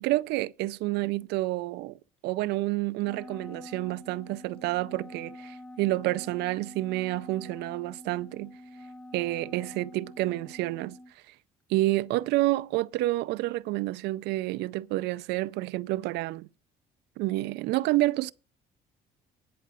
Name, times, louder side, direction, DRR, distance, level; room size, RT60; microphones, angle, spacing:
voice 1, 0.0-8.5 9.1-11.0 11.3-11.4 11.7-16.5 17.2-18.3, right 18 dB, 85° right, 0.4 m, -29 dB
Wind instrument woodwind instrument, 3.0-11.1, left 1 dB, 5° left, 0.4 m, -46 dB
11.0 x 5.0 x 7.0 m
cardioid pair, 110°, 17 cm